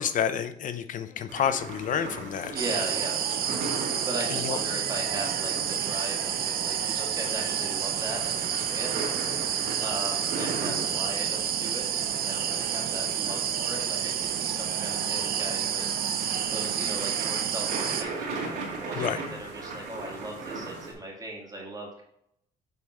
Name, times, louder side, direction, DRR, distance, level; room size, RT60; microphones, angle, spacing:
voice 1, 0.0-2.5 4.3-4.6 19.0-19.2, left 8 dB, 50° left, 11 dB, 0.6 m, -29 dB
sound 1, 1.3-20.9, right 3 dB, 80° right, 2.1 m, -39 dB
voice 2, 2.5-3.2 4.0-8.9 9.8-16.2 16.5-22.0, right 1 dB, 20° right, -1 dB, 1.8 m, -38 dB
sound 2, 2.6-18.0, right 8 dB, 60° right, 0.7 m, -29 dB
8.0 x 3.6 x 4.1 m, 0.75 s
cardioid pair, 110°, 17 cm